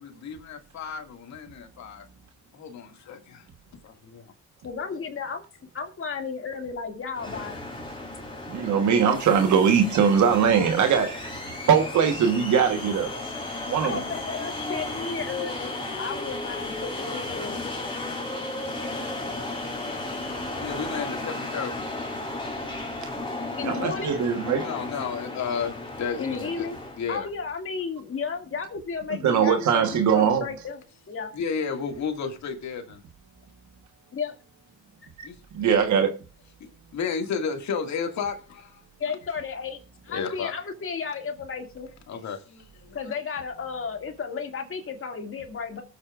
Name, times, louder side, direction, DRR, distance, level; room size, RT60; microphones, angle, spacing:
voice 1, 0.0-2.0 2.5-3.4 3.8-4.3 20.5-21.8 24.6-26.7 27.0-27.3 31.3-33.0 35.2-35.3 35.6-35.8 36.6-38.8 40.1-40.5 42.1-43.1, left 6 dB, 65° left, 2.1 m, -32 dB
voice 2, 4.6-5.4 5.7-7.6 13.8-17.7 23.6-24.2 26.2-26.8 27.1-30.8 31.1-31.3 34.2-34.3 39.0-39.8 40.0-41.9 42.9-45.8, left 5 dB, 45° left, 2.4 m, -33 dB
sound 1, 7.1-27.0, left 2 dB, 15° left, 3.3 m, -34 dB
voice 3, 8.5-13.1 13.7-14.0 23.6-24.7 29.2-30.5 35.2-35.3 35.5-36.1, right 7 dB, 75° right, 1.3 m, -21 dB
22.0 x 8.3 x 2.5 m
cardioid pair, 90°, 30 cm